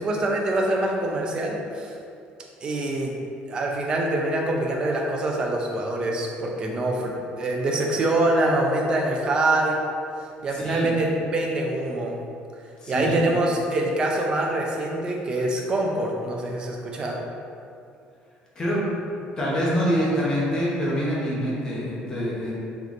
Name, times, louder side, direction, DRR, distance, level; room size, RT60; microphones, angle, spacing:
voice 1, 0.0-1.9 2.6-3.1 3.5-9.8 10.4-12.2 12.9-17.2, right 2 dB, 25° right, 0 dB, 0.4 m, -25 dB
voice 2, 10.5-10.9 12.8-13.2 18.6-18.8 19.4-22.5, equal, 20° left, -6 dB, 0.8 m, -25 dB
3.2 x 3.0 x 3.9 m, 2.5 s
cardioid pair, 175°, 3 cm